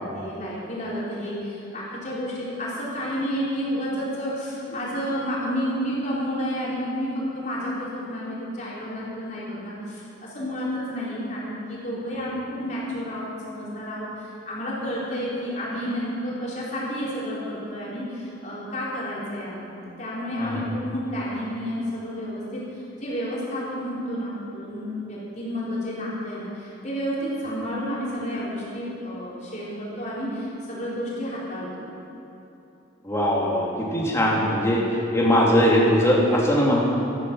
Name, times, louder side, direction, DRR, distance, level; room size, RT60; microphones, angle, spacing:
voice 1, 0.1-31.8, equal, 40° left, -7 dB, 4.4 m, -30 dB
voice 2, 33.0-34.8 35.1-36.9, equal, 15° left, -4 dB, 2.5 m, -20 dB
14.0 x 13.0 x 6.2 m, 2.9 s
head